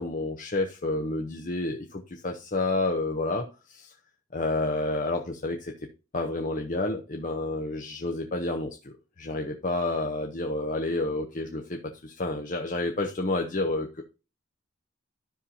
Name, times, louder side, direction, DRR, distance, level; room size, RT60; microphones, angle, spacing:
voice 1, 0.0-3.9 4.3-5.7 6.1-14.0, left 2 dB, 40° left, 4 dB, 0.7 m, -30 dB
12.5 x 5.6 x 2.7 m, 0.32 s
head